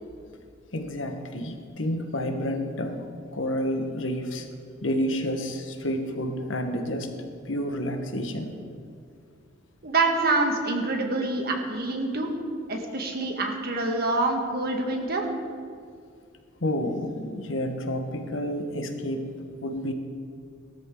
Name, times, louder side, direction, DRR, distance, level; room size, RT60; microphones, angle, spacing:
voice 1, 0.7-4.5 4.8-7.1 7.5-8.6 16.6-19.3 19.6-19.9, equal, 70° left, 5 dB, 1.4 m, -30 dB
voice 2, 9.8-12.3 12.7-15.3, right 2 dB, 50° right, 2 dB, 1.8 m, -26 dB
18.5 x 13.0 x 3.8 m, 2.2 s
head